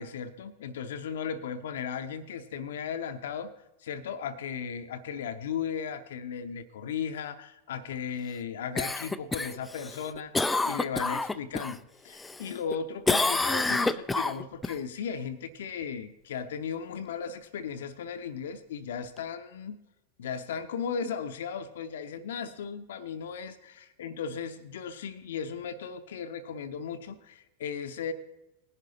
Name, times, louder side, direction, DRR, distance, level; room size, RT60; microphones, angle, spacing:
voice 1, 0.0-3.5 3.8-19.8 20.2-28.1, left 7 dB, 60° left, 10 dB, 0.7 m, -36 dB
Cough, 8.8-11.8 12.2-12.8 13.1-14.7 19.2-19.3, left 3 dB, 10° left, 0.4 m, -28 dB
19.0 x 11.0 x 2.8 m, 0.95 s
figure-of-eight pair, 90°, 0 cm